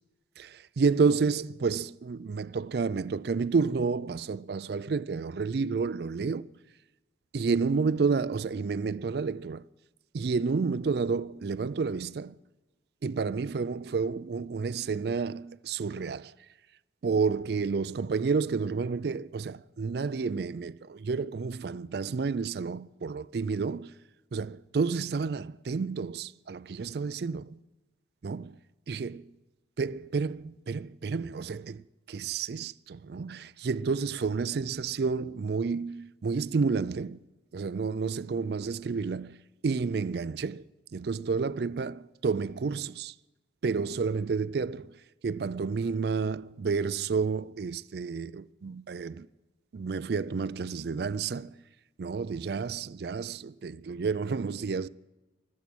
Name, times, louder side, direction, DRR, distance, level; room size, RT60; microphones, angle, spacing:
voice 1, 0.4-6.5 7.3-9.6 10.1-12.3 13.0-16.3 17.0-23.9 24.3-27.6 28.2-28.5 28.9-29.2 29.8-31.8 32.1-37.2 37.5-39.4 39.6-40.6 40.9-43.1 43.6-44.9 45.2-49.3 49.7-51.6 52.0-54.9, right 5 dB, 55° right, 0.4 m, -30 dB
24.0 x 8.4 x 6.1 m
head